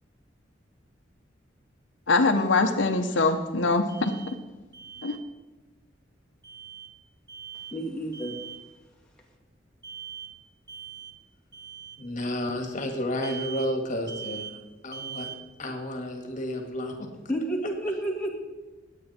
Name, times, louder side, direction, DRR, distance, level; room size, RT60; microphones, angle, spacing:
voice 1, 2.1-4.1 5.0-5.2, left 3 dB, 80° left, 6 dB, 0.9 m, -23 dB
Alarm, 3.9-4.3 4.7-5.2 6.4-6.9 7.3-7.8 8.1-8.6 9.8-10.3 10.7-11.1 11.5-12.0 13.2-13.7 14.1-14.5 14.9-15.4, right 8 dB, 20° right, 1.9 m, -41 dB
voice 2, 7.7-8.4 17.3-18.3, right 1 dB, 5° left, -3 dB, 2.4 m, -30 dB
voice 3, 12.0-14.5 14.8-15.3 15.6-16.9, left 1 dB, 45° left, 4 dB, 2.0 m, -31 dB
19.5 x 8.4 x 4.3 m, 1.2 s
head